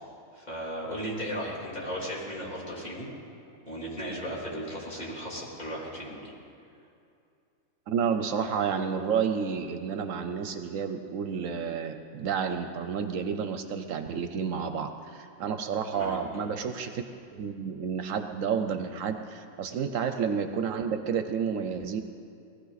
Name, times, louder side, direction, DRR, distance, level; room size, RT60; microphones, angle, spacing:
voice 1, 0.3-3.1 3.7-6.3 15.9-16.4, equal, 30° left, -5 dB, 3.4 m, -36 dB
voice 2, 7.9-17.0 17.3-22.0, right 6 dB, 70° right, 8 dB, 1.0 m, -30 dB
20.0 x 14.5 x 4.0 m, 2.5 s
omnidirectional pair, 1.5 m